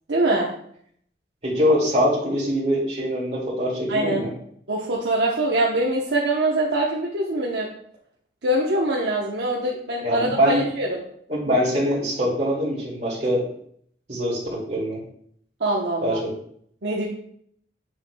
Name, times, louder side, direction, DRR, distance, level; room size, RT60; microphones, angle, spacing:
voice 1, 0.1-0.5 3.9-4.2 4.7-7.7 8.4-10.9 15.6-16.2 16.8-17.0, right 1 dB, 75° right, -4 dB, 0.9 m, -23 dB
voice 2, 1.4-4.3 10.0-10.6 11.3-13.5 14.1-15.0 16.0-16.3, equal, 40° right, -6 dB, 2.2 m, -23 dB
8.1 x 6.6 x 2.3 m, 0.65 s
head